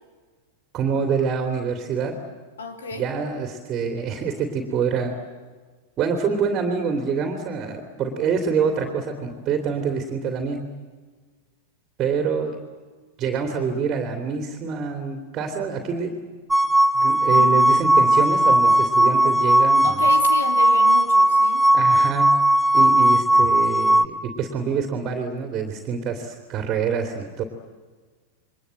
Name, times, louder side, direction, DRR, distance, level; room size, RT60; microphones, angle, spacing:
voice 1, 0.7-2.2 3.0-5.1 6.0-10.7 12.0-12.6 13.2-16.1 16.9-20.0 21.7-22.4 22.7-27.4, right 6 dB, 30° right, 5 dB, 3.1 m, -26 dB
voice 2, 2.6-3.1 17.3-17.7 19.8-21.7, left 3 dB, 65° left, 6 dB, 3.3 m, -31 dB
sound 1, 16.5-24.1, right 1 dB, 5° right, 1.3 m, -17 dB
29.0 x 23.5 x 7.8 m, 1.4 s
figure-of-eight pair, 90°, 0 cm